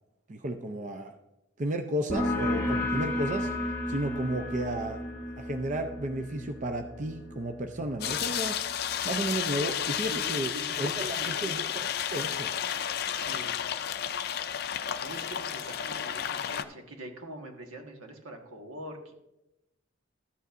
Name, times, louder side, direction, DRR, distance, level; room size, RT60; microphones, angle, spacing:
voice 1, 0.3-1.1 1.6-3.5 3.9-5.0 5.4-8.5 9.0-10.5 10.8-12.5, right 1 dB, 35° right, 6 dB, 0.5 m, -33 dB
sound 1, 2.1-9.4, left 1 dB, 10° left, 1.5 m, -33 dB
sound 2, 8.0-16.6, left 9 dB, 50° left, 0.4 m, -32 dB
voice 2, 10.0-11.6 13.1-13.6 15.0-19.1, right 1 dB, 85° right, 3 dB, 1.4 m, -43 dB
13.0 x 8.1 x 2.5 m, 0.91 s
head